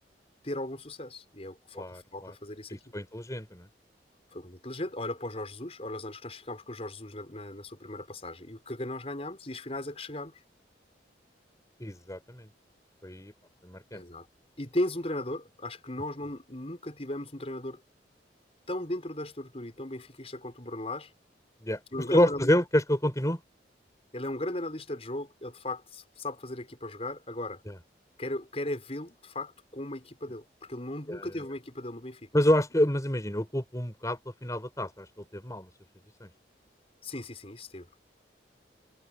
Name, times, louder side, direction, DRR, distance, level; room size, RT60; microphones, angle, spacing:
voice 1, 0.4-2.8 4.3-10.4 13.9-14.3 14.6-17.8 18.7-21.1 21.9-22.5 24.1-27.6 28.2-32.3 37.0-37.9, left 1 dB, 35° left, 5.9 m, -37 dB
voice 2, 1.7-2.3 2.7-3.7 11.8-12.5 13.0-13.3 13.6-14.0 21.6-21.8 22.1-23.4 27.7-27.8 31.1-31.3 32.3-35.7 36.2-36.3, left 1 dB, 20° left, 5.1 m, -28 dB
head